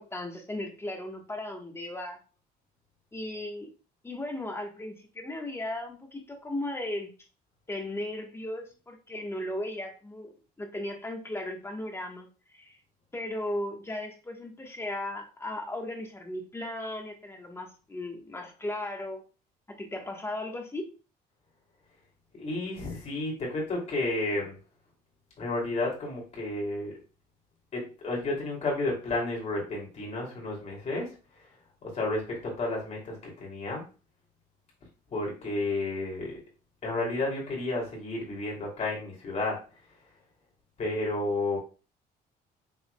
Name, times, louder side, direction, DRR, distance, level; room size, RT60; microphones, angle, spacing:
voice 1, 0.0-2.2 3.1-3.7 4.0-7.1 7.7-10.3 10.6-12.8 13.1-19.2 19.7-20.9, left 1 dB, 15° left, 3 dB, 1.1 m, -36 dB
voice 2, 22.3-24.6 25.4-26.9 27.7-31.1 31.8-33.8 35.1-36.4 36.8-39.6 40.8-41.6, left 2 dB, 40° left, -2 dB, 2.6 m, -31 dB
6.0 x 3.6 x 2.2 m, 0.33 s
cardioid pair, 110°, 17 cm